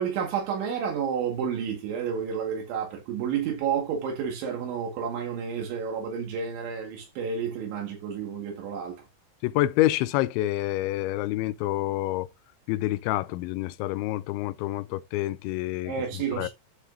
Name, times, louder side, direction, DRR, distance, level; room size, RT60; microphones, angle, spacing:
voice 1, 0.0-9.0 15.8-16.5, right 7 dB, 80° right, 4.2 m, -30 dB
voice 2, 9.4-12.3 12.7-15.9 16.4-16.5, left 16 dB, 85° left, 2.8 m, -27 dB
11.5 x 5.5 x 2.7 m
omnidirectional pair, 5.2 m